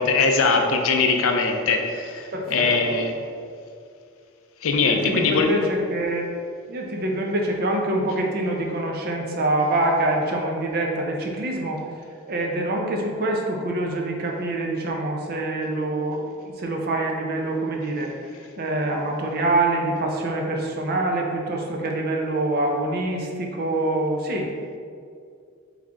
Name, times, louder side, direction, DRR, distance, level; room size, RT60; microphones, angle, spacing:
voice 1, 0.0-3.1 4.6-5.5, left 4 dB, 65° left, 4 dB, 0.4 m, -21 dB
voice 2, 2.3-2.7 4.8-6.3 6.7-11.8 12.3-16.2 16.6-18.1 18.6-24.5, right 2 dB, 45° right, 1 dB, 0.5 m, -25 dB
3.5 x 3.2 x 3.7 m, 2.3 s
head